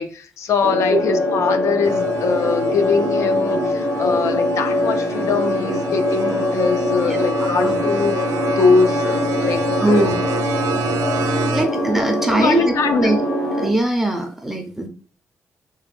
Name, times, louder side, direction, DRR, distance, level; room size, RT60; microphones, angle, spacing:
voice 1, 0.0-8.2 8.5-10.1 11.7-11.8 12.4-13.1, left 5 dB, 70° left, 0.4 m, -22 dB
sound 1, 0.6-13.7, left 1 dB, 45° left, 0.9 m, -22 dB
sound 2, 1.8-11.6, right 3 dB, 85° right, 0.4 m, -31 dB
voice 2, 7.1-7.8 9.8-10.2 11.5-13.2 13.6-14.9, right 1 dB, 5° right, 0.4 m, -21 dB
3.3 x 2.1 x 3.3 m
wide cardioid pair, 150°, 5 cm